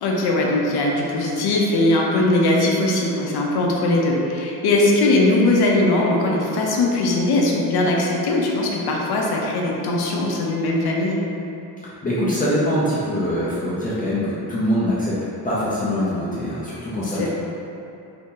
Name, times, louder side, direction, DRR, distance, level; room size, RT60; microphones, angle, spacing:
voice 1, 0.0-11.2 17.2-17.3, left 2 dB, 60° left, -2 dB, 0.6 m, -20 dB
voice 2, 12.0-15.2 15.4-17.3, equal, 20° left, -10 dB, 0.4 m, -23 dB
2.8 x 2.6 x 3.7 m, 2.8 s
wide cardioid pair, 175°, 43 cm